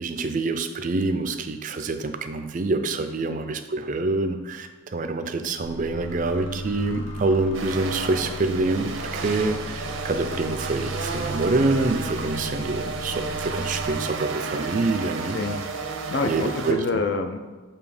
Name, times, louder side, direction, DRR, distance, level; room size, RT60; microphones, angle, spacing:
voice 1, 0.0-15.4 16.2-16.8, right 3 dB, 40° right, 7 dB, 0.4 m, -26 dB
sound 1, 5.6-13.9, equal, 85° left, 1.3 m, -36 dB
sound 2, 7.5-16.7, right 4 dB, 75° right, 0.6 m, -32 dB
voice 2, 15.3-15.7 16.1-17.4, left 3 dB, 55° left, 7 dB, 0.5 m, -27 dB
7.0 x 2.8 x 4.9 m, 1.3 s
head